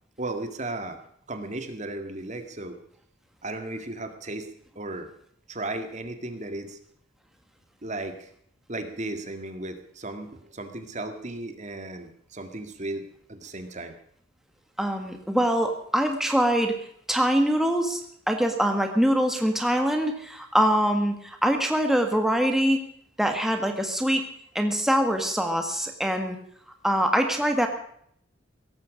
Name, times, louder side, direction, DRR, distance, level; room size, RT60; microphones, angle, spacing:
voice 1, 0.2-1.0 1.3-2.8 3.4-4.5 4.8-5.1 5.5-6.8 7.8-8.3 8.7-14.0, right 2 dB, 40° right, 7 dB, 1.9 m, -35 dB
voice 2, 14.8-16.7 17.1-18.0 18.3-22.9 23.2-24.3 24.5-26.4 26.8-27.7, equal, ahead, 4 dB, 1.6 m, -23 dB
17.5 x 15.0 x 5.1 m, 0.66 s
head